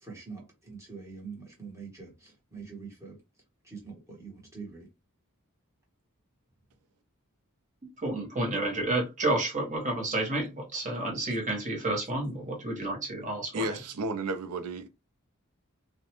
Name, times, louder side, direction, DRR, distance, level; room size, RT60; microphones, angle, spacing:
voice 1, 0.0-3.2 3.6-4.9, right 5 dB, 15° right, 1.2 m, -44 dB
voice 2, 7.8-13.7, right 2 dB, 35° right, 1.0 m, -30 dB
voice 3, 13.5-14.9, right 2 dB, 90° right, 0.5 m, -32 dB
2.5 x 2.1 x 2.9 m
head